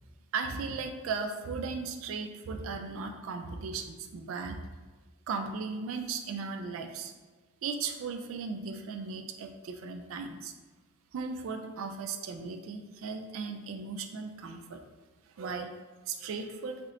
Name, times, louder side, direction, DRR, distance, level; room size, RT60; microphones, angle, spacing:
voice 1, 0.3-4.6 5.3-7.1 7.6-10.5 11.1-14.8 15.4-15.8 16.1-16.8, right 4 dB, 75° right, 6 dB, 0.3 m, -36 dB
3.4 x 2.5 x 2.7 m, 1.3 s
head